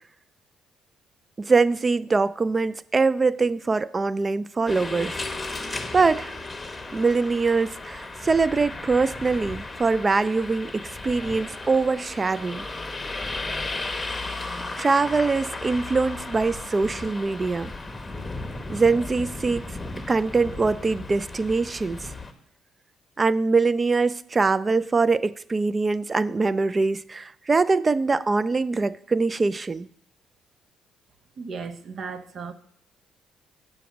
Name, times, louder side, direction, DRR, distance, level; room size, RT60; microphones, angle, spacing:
voice 1, 1.4-5.2 5.9-6.3 6.9-12.7 14.8-17.7 18.7-19.7 20.1-22.1 23.2-29.9, right 4 dB, 30° right, 0.4 m, -23 dB
sound 1, 4.7-22.3, left 2 dB, 15° left, 1.0 m, -35 dB
voice 2, 31.4-32.5, right 5 dB, 55° right, 0.8 m, -35 dB
6.9 x 5.2 x 7.2 m
supercardioid pair, 75°, 0 cm